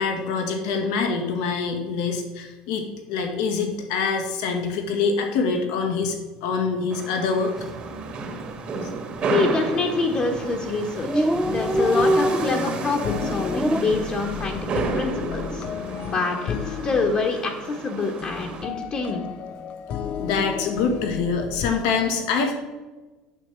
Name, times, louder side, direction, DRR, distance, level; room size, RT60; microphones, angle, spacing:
voice 1, 0.0-6.2 6.4-7.5 20.2-22.5, left 5 dB, 80° left, 4 dB, 1.7 m, -25 dB
sound 1, 6.9-18.6, right 3 dB, 45° right, 1.8 m, -32 dB
Dog, 7.6-7.9 8.2-8.3 8.5-9.2 9.8-10.0 10.4-10.5 10.6-10.7 10.9-13.8, right 1 dB, 5° right, 0.5 m, -24 dB
voice 2, 9.3-15.6 16.1-19.3, left 4 dB, 40° left, 1 dB, 1.4 m, -26 dB
sound 2, 10.4-21.7, left 7 dB, 55° left, 0.6 m, -34 dB
8.9 x 6.5 x 4.6 m, 1.2 s
supercardioid pair, 105°, 3 cm